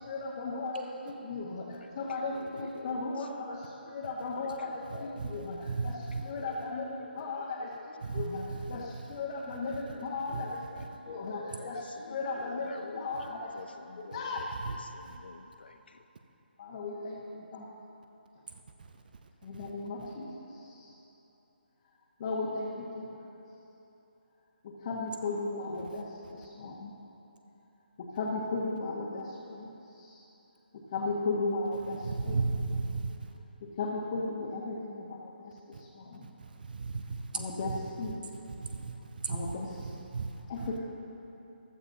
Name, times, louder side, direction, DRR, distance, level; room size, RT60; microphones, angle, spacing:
voice 1, 0.0-14.6 16.6-17.7 19.4-21.0 22.2-23.2 24.6-26.9 28.0-30.2 30.7-32.4 33.6-36.3 37.3-38.2 39.3-39.9 40.5-40.8, left 3 dB, 35° left, -5 dB, 1.4 m, -36 dB
voice 2, 1.8-3.0 4.4-5.5 5.9-6.0 6.4-7.9 8.6-9.0 9.9-16.0, left 4 dB, 65° left, 7 dB, 0.8 m, -48 dB
voice 3, 4.9-5.3 5.6-6.2 8.0-9.0 10.3-10.4 10.8-10.9 14.6-14.7 15.0-15.2 19.5-19.7 25.9-26.0 32.0-33.3 35.7-35.8 36.2-37.8 38.6-39.5 39.8-40.4, right 4 dB, 55° right, 6 dB, 0.7 m, -35 dB
15.0 x 12.0 x 2.8 m, 3.0 s
figure-of-eight pair, 155°, 6 cm